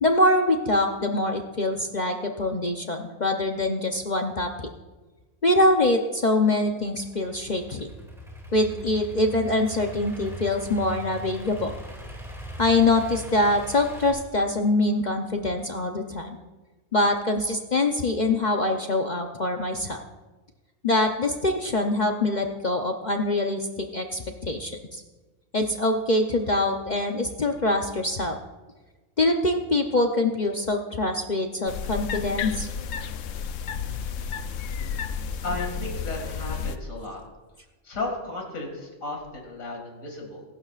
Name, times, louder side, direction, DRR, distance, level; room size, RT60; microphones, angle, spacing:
voice 1, 0.0-4.5 5.4-7.9 8.5-11.7 12.6-16.4 16.9-20.0 20.8-25.0 25.5-28.4 29.2-32.7, left 2 dB, 40° left, 3 dB, 0.8 m, -24 dB
Idling / Accelerating revving vroom, 7.0-14.1, equal, ahead, 2.4 m, -40 dB
sound 1, 31.7-36.8, left 6 dB, 75° left, 1.0 m, -32 dB
voice 2, 35.4-37.2 37.8-40.4, left 2 dB, 90° left, 1 dB, 2.7 m, -34 dB
22.5 x 12.0 x 2.5 m, 1.2 s
omnidirectional pair, 1.4 m